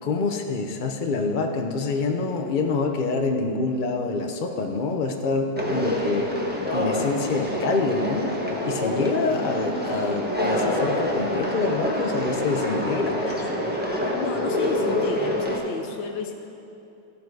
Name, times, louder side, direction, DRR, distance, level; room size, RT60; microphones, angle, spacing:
voice 1, 0.0-6.3 6.7-8.3 8.6-13.1, left 3 dB, 60° left, 3 dB, 0.5 m, -26 dB
Conversation, 5.6-15.6, left 1 dB, 5° right, 1.0 m, -26 dB
voice 2, 9.3-9.8 13.2-13.6 14.1-16.3, left 4 dB, 90° left, 4 dB, 1.7 m, -33 dB
16.5 x 6.9 x 4.7 m, 2.8 s
omnidirectional pair, 2.0 m